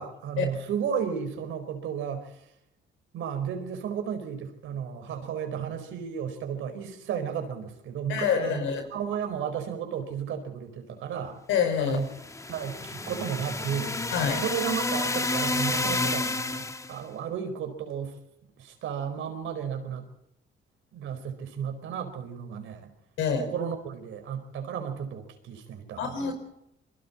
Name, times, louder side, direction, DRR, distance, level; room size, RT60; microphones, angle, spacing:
voice 1, 0.0-2.4 3.1-11.4 11.8-12.1 12.5-13.9 14.3-18.1 18.6-20.1 20.9-22.9 23.4-26.3, right 8 dB, 85° right, 7 dB, 4.6 m, -33 dB
voice 2, 8.1-8.8 11.5-12.0 14.1-14.4 23.2-23.4 26.0-26.3, left 7 dB, 90° left, 6 dB, 5.2 m, -26 dB
sound 1, 12.0-17.0, left 2 dB, 15° left, 1.3 m, -30 dB
27.0 x 22.5 x 4.3 m, 0.82 s
cardioid pair, 90°, 20 cm